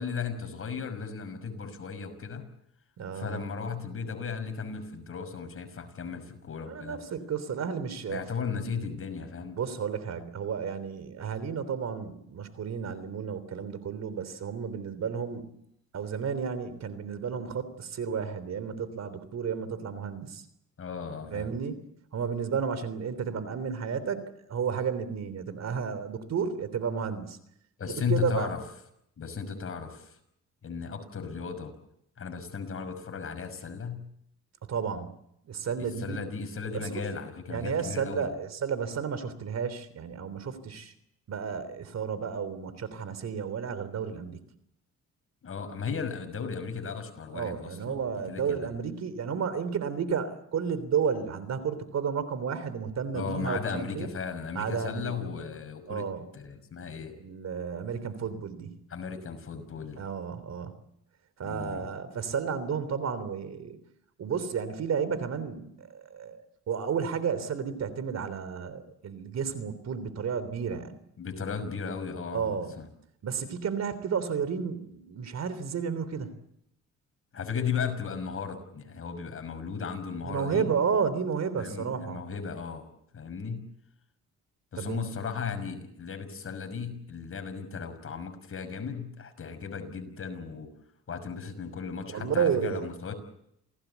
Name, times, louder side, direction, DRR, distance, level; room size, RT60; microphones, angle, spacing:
voice 1, 0.0-2.5 3.1-7.0 8.1-9.6 20.8-21.5 27.8-28.6 29.2-30.2 30.6-31.7 32.2-34.1 35.8-38.3 45.4-48.0 48.3-48.7 53.1-56.1 56.3-57.1 58.9-60.0 61.4-61.9 71.2-72.9 77.3-80.7 81.6-82.9 83.1-83.7 84.7-90.7 91.1-93.1, left 6 dB, 45° left, 7 dB, 5.9 m, -35 dB
voice 2, 3.0-3.4 6.6-8.2 9.6-15.5 15.9-20.4 21.3-21.8 22.1-24.2 24.5-27.4 27.8-28.5 34.7-35.1 35.4-36.2 36.7-37.0 37.5-40.9 41.3-44.4 47.3-54.1 54.6-55.3 55.9-56.3 57.2-58.7 60.0-60.8 61.4-63.8 64.2-66.4 66.7-70.9 72.3-72.7 73.2-76.3 80.2-82.2 84.8-85.0 92.1-92.9, right 6 dB, 60° right, 14 dB, 3.5 m, -32 dB
28.0 x 18.0 x 8.3 m, 0.76 s
cardioid pair, 90°, 30 cm